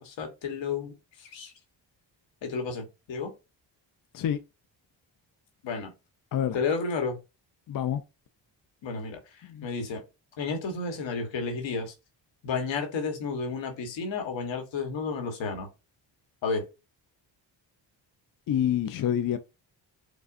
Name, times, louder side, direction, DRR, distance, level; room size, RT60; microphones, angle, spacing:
voice 1, 0.0-0.9 1.2-1.5 2.4-3.3 5.6-5.9 6.5-7.2 8.8-10.0 10.4-11.9 12.4-15.7 16.4-16.6, left 4 dB, 75° left, 1.3 m, -32 dB
voice 2, 7.7-8.0 9.4-9.7 18.5-19.4, left 10 dB, 50° left, 0.5 m, -27 dB
4.9 x 2.3 x 2.5 m
cardioid pair, 70°, 45 cm